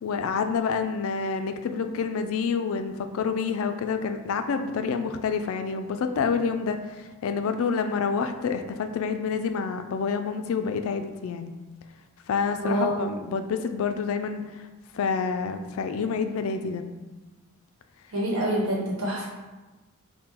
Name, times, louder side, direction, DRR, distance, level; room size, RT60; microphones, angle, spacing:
voice 1, 0.0-11.5 12.3-14.6 14.9-16.8, left 5 dB, 65° left, 8 dB, 0.3 m, -28 dB
voice 2, 18.1-19.3, right 1 dB, 90° right, -3 dB, 1.1 m, -26 dB
3.6 x 2.2 x 4.3 m, 1.2 s
head